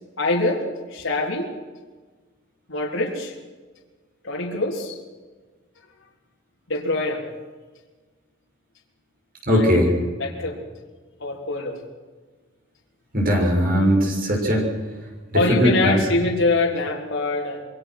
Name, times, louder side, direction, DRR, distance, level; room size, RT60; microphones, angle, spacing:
voice 1, 0.2-1.5 2.7-3.3 4.2-5.0 6.7-7.2 9.5-9.8 10.2-10.6 11.2-11.8 15.3-17.6, left 2 dB, 75° left, -2 dB, 3.7 m, -24 dB
voice 2, 9.5-9.9 13.1-14.7 15.3-16.0, equal, 45° right, 1 dB, 6.5 m, -19 dB
27.0 x 23.0 x 6.2 m, 1.4 s
head